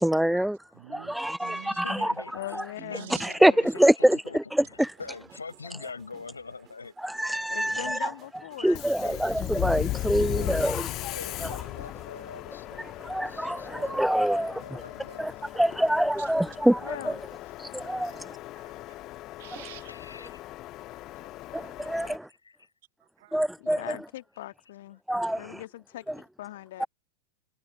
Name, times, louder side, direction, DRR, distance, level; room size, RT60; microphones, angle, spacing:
voice 1, 0.0-0.6 0.9-2.1 2.5-2.6 3.2-3.5 3.8-4.2 4.8-4.9 7.0-8.1 8.6-10.8 13.0-14.8 15.2-17.2 17.6-18.4 21.5-22.3 23.3-24.0 25.1-25.6 26.8-26.9, right 1 dB, ahead, 0.3 m, -25 dB
voice 2, 0.7-1.8 2.7-3.3 8.9-9.0 9.2-9.4 9.9-10.1 10.5-10.7 16.2-16.3 18.1-18.2 18.5-19.1 19.4-19.9 20.9-21.4 23.0-23.5, right 17 dB, 55° right, 1.6 m, -48 dB
voice 3, 1.6-6.9 7.7-8.0 10.1-12.9 13.3-15.3 19.9-20.4 22.3-22.7, left 4 dB, 75° left, 4.4 m, -44 dB
voice 4, 2.3-3.1 7.5-9.4 16.8-17.2 23.6-25.0 25.4-26.9, left 15 dB, 55° left, 1.5 m, -41 dB
sound 1, 4.7-17.5, right 11 dB, 30° right, 2.3 m, -58 dB
Subway metro underground, 8.7-22.2, left 16 dB, 35° left, 1.3 m, -37 dB
figure-of-eight pair, 90°, 0 cm